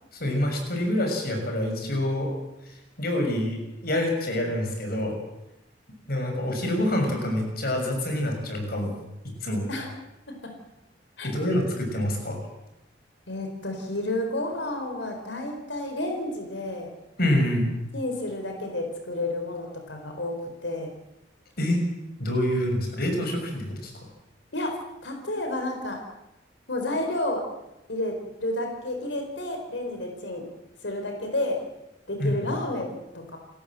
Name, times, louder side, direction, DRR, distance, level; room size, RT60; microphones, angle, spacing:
voice 1, 0.1-2.3 2.6-5.2 6.1-8.9 9.2-9.7 11.2-12.4 17.2-17.7 21.6-21.8 22.2-23.9 32.2-32.5, left 1 dB, 55° left, 3 dB, 6.5 m, -26 dB
voice 2, 13.3-16.9 17.9-20.9 24.5-24.8 25.0-26.0 26.7-27.4 27.9-30.5 30.8-31.6 32.1-33.4, left 1 dB, 75° left, 3 dB, 4.6 m, -31 dB
29.0 x 14.5 x 7.7 m, 0.91 s
head